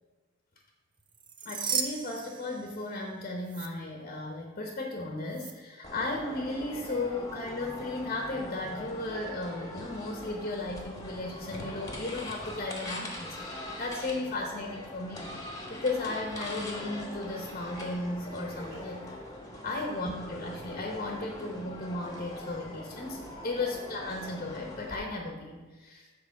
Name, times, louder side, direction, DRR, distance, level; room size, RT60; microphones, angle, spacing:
sound 1, 1.1-3.1 3.4-3.7 5.3-5.5, right 6 dB, 25° right, 0.5 m, -35 dB
voice 1, 1.4-15.3 15.7-19.3 19.6-26.2, left 2 dB, 40° left, 1 dB, 0.9 m, -35 dB
sound 2, 5.8-24.9, left 1 dB, 15° left, 1.1 m, -42 dB
7.4 x 4.3 x 5.7 m, 1.3 s
head